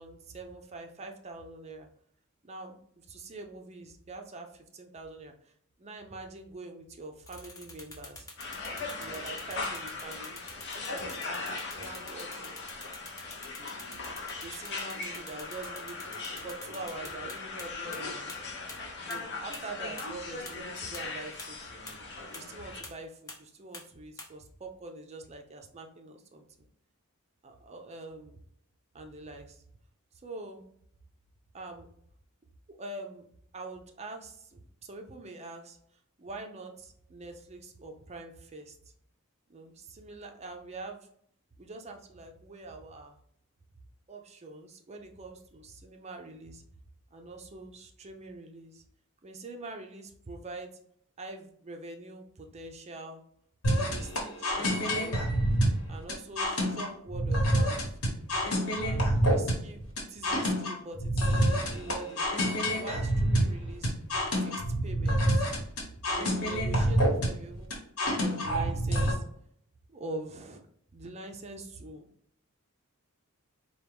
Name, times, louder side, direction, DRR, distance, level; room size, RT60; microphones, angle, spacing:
voice 1, 0.0-1.9 2.5-2.8 3.1-4.5 4.7-5.3 5.8-8.2 9.0-10.4 10.7-11.4 11.7-12.4 14.4-16.0 16.4-18.4 19.0-21.6 22.3-26.4 27.4-28.4 28.9-29.6 30.2-30.6 31.5-31.9 32.7-33.2 33.5-34.3 34.8-35.8 36.2-38.7 39.5-41.0 41.6-43.2 44.1-46.6 47.1-48.8 49.2-50.7 51.2-53.2 53.9-55.2 55.9-57.8 58.7-61.4 61.7-62.3 62.8-63.9 64.4-64.5 64.8-65.5 66.1-67.8 68.1-69.2 69.9-70.6 70.9-72.1, right 2 dB, 30° right, 4 dB, 0.5 m, -44 dB
sound 1, 7.3-17.6 17.9-18.0 18.3-18.4 18.7-18.8 19.1-19.2 19.5-19.6 20.0-20.1 20.5-20.6 20.9-21.0 21.4-21.5 21.9-22.0 22.3-22.4 22.8-22.9 23.3-23.4 23.7-23.8 24.2-24.3, left 2 dB, 15° left, 0.8 m, -44 dB
sound 2, 8.4-22.8, left 3 dB, 55° left, 0.7 m, -39 dB
sound 3, 53.6-69.1, equal, 80° left, 1.3 m, -27 dB
4.4 x 2.3 x 3.4 m, 0.67 s
head